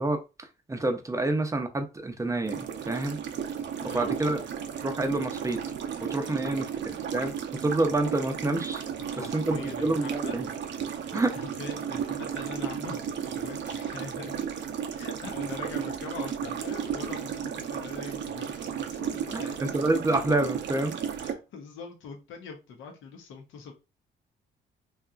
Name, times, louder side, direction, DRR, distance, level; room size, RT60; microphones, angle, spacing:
voice 1, 0.0-3.2 3.8-4.4 4.8-5.6 6.0-6.7 7.1-8.8 9.2-10.5 11.1-11.3 19.3-21.0, right 2 dB, 15° right, 0.5 m, -28 dB
sound 1, 2.5-21.3, right 8 dB, 65° right, 0.5 m, -34 dB
voice 2, 3.4-4.2 6.3-6.6 9.0-14.4 14.9-19.8 21.2-23.7, left 5 dB, 80° left, 0.7 m, -43 dB
2.8 x 2.4 x 2.4 m
cardioid pair, 90°, 20 cm